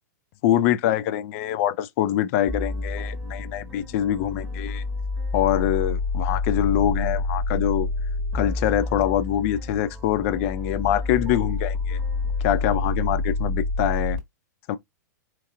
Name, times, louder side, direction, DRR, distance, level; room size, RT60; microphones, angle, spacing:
voice 1, 0.4-4.8 5.3-7.9 8.3-12.0 12.4-14.2 14.7-14.8, left 11 dB, 45° left, 0.4 m, -24 dB
sound 1, 2.5-14.2, left 3 dB, 10° right, 1.3 m, -28 dB
4.4 x 2.7 x 2.4 m
figure-of-eight pair, 105°, 10 cm